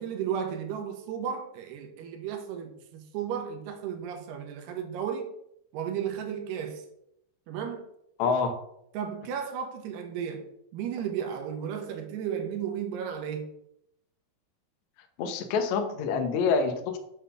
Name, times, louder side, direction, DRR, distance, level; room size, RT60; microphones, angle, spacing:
voice 1, 0.0-5.3 5.7-6.9 7.5-7.9 8.9-10.4 10.7-13.5, right 8 dB, 85° right, 3.1 m, -34 dB
voice 2, 8.2-8.5 15.2-17.0, left 5 dB, 80° left, 1.6 m, -26 dB
7.9 x 4.1 x 6.6 m
omnidirectional pair, 4.6 m